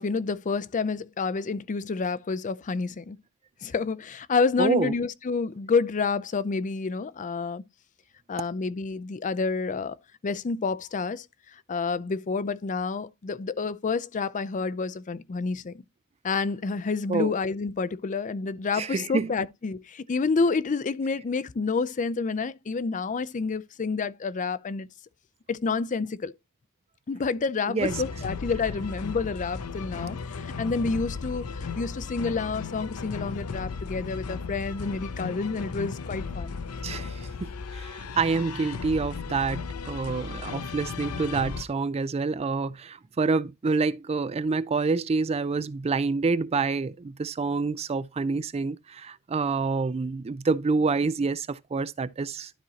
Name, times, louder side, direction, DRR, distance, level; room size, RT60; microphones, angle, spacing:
voice 1, 0.0-3.2 3.6-7.6 8.3-10.0 10.2-11.3 11.7-15.7 16.2-24.9 25.5-26.3 27.1-36.6, left 4 dB, 35° left, 0.4 m, -29 dB
voice 2, 4.6-4.9 17.1-17.3 18.7-19.3 27.7-28.0 36.8-52.5, right 4 dB, 30° right, 0.4 m, -27 dB
sound 1, 27.8-41.6, left 5 dB, 80° left, 0.7 m, -35 dB
12.0 x 4.4 x 2.8 m
head